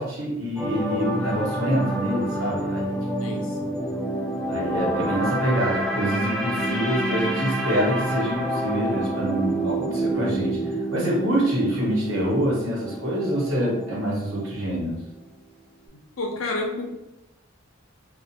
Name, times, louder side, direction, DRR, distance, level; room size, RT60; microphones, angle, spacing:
voice 1, 0.0-3.0 4.5-15.0, equal, 75° right, -4 dB, 1.0 m, -26 dB
sound 1, 0.6-14.7 15.0-15.2, right 1 dB, 5° left, 0.3 m, -28 dB
voice 2, 3.2-3.8 15.9-16.8, left 2 dB, 85° left, 1 dB, 0.6 m, -30 dB
2.5 x 2.3 x 2.7 m, 0.90 s
head